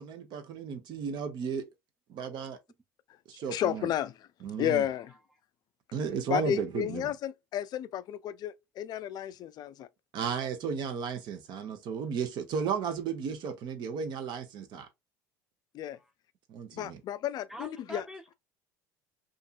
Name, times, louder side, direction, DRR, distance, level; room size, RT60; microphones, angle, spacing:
voice 1, 0.0-1.7 2.1-2.6 3.3-3.9 4.4-4.9 5.9-7.1 10.1-14.9 16.5-17.0, right 6 dB, 55° right, 0.8 m, -34 dB
voice 2, 3.5-4.1 4.6-5.1 6.3-9.9 15.7-16.0 16.7-18.0, left 10 dB, 45° left, 0.4 m, -32 dB
voice 3, 17.5-18.3, equal, 5° right, 0.8 m, -44 dB
2.7 x 2.5 x 2.4 m
hypercardioid pair, 75°, 9 cm